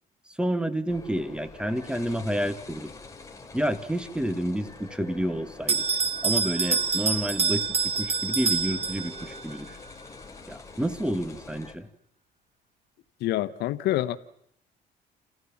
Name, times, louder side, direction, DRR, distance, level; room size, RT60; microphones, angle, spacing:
voice 1, 0.3-2.9 3.5-5.8 6.2-9.8 10.5-11.9, equal, 5° right, 1.5 m, -29 dB
sound 1, 0.9-11.7, left 4 dB, 20° left, 3.1 m, -46 dB
Bell, 5.7-9.4, right 5 dB, 35° right, 1.5 m, -26 dB
voice 2, 13.2-14.2, left 14 dB, 80° left, 1.0 m, -26 dB
29.5 x 14.5 x 7.3 m
cardioid pair, 110°, 17 cm